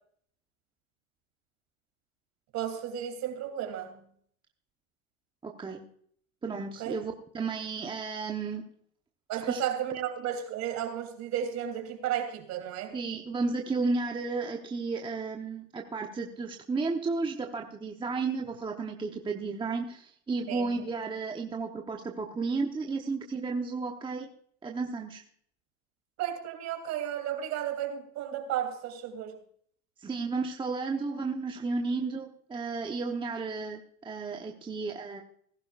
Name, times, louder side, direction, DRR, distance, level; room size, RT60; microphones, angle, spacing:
voice 1, 2.5-4.0 6.8-7.0 9.3-13.0 20.5-20.7 26.2-29.4, right 10 dB, 40° right, 3.1 m, -33 dB
voice 2, 5.4-5.8 6.4-8.6 9.4-9.6 12.9-24.3 24.6-25.2 30.0-35.2, right 4 dB, 10° right, 0.9 m, -33 dB
19.0 x 11.5 x 2.4 m
supercardioid pair, 125°, 41 cm